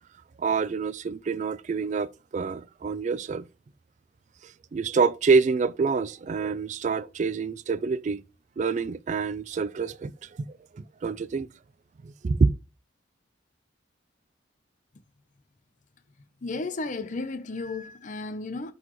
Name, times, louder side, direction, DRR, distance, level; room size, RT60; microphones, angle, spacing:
voice 1, 0.4-3.4 4.4-8.2 8.6-10.5 10.7-11.5 12.0-12.5, right 4 dB, 40° right, 0.3 m, -26 dB
voice 2, 16.4-18.7, left 3 dB, 40° left, 0.6 m, -33 dB
12.0 x 4.0 x 3.0 m
head